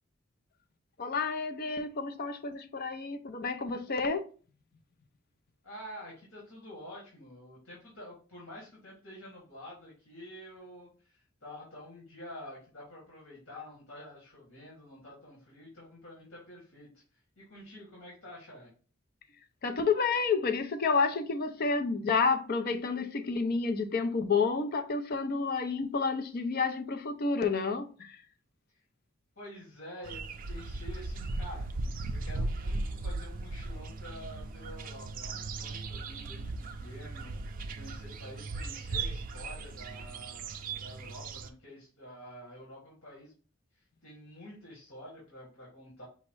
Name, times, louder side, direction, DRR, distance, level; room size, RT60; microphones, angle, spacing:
voice 1, 1.0-4.3 19.6-28.2, left 4 dB, 50° left, 0.5 m, -30 dB
voice 2, 5.6-18.7 28.7-28.8 29.4-31.7 32.1-43.3 43.7-46.0, left 1 dB, 85° left, 2.0 m, -48 dB
sound 1, 30.0-41.5, right 3 dB, 45° right, 0.4 m, -37 dB
5.6 x 2.1 x 4.6 m
head